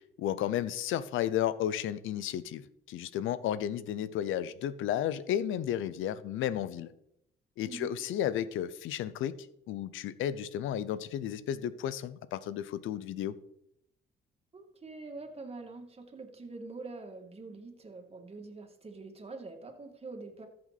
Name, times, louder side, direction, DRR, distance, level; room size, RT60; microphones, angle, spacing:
voice 1, 0.2-6.9 7.6-9.4 9.7-13.3, left 10 dB, 85° left, 15 dB, 0.8 m, -33 dB
voice 2, 14.5-20.5, right 3 dB, 30° right, 3 dB, 2.3 m, -45 dB
14.0 x 7.7 x 4.2 m, 0.76 s
cardioid pair, 90°, 20 cm